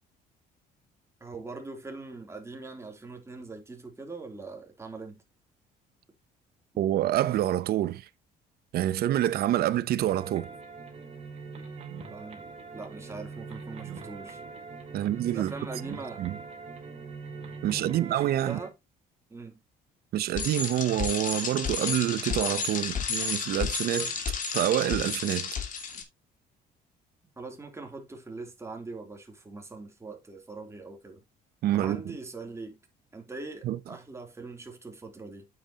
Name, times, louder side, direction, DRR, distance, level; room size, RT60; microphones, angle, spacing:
voice 1, 1.2-5.2 12.1-14.4 14.9-16.2 17.9-18.7 19.3-19.6 27.4-31.2 31.7-32.8 33.1-35.5, right 3 dB, 15° right, 3.2 m, -42 dB
voice 2, 6.8-8.1 8.7-10.5 14.9-15.5 16.2-16.4 17.6-18.6 20.1-24.1 24.5-25.5 31.6-32.2 33.6-33.8, right 13 dB, 65° right, 0.8 m, -27 dB
sound 1, 10.0-18.7, right 5 dB, 40° right, 3.3 m, -42 dB
Bicycle, 20.4-26.0, left 6 dB, 50° left, 2.4 m, -32 dB
8.8 x 8.0 x 2.9 m
cardioid pair, 110°, 17 cm